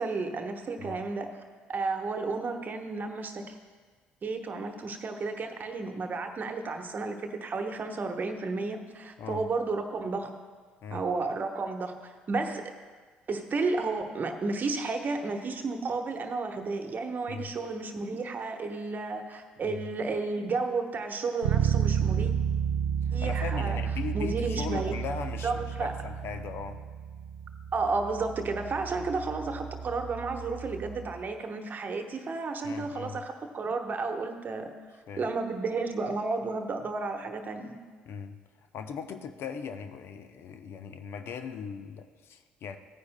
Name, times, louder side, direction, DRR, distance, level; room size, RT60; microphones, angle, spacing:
voice 1, 0.0-1.4 1.7-3.5 4.2-10.3 10.9-12.6 13.3-22.3 23.1-23.8 24.1-24.9 25.4-25.9 27.7-34.7 35.2-37.7, right 3 dB, 40° right, 5 dB, 1.1 m, -32 dB
Bass guitar, 21.4-31.2, right 8 dB, 80° right, 0.5 m, -31 dB
voice 2, 23.0-26.8 32.6-33.2 35.1-35.3 38.1-38.4 38.7-42.8, left 6 dB, 55° left, 8 dB, 0.6 m, -39 dB
15.5 x 9.5 x 2.2 m, 1.5 s
hypercardioid pair, 55°, 5 cm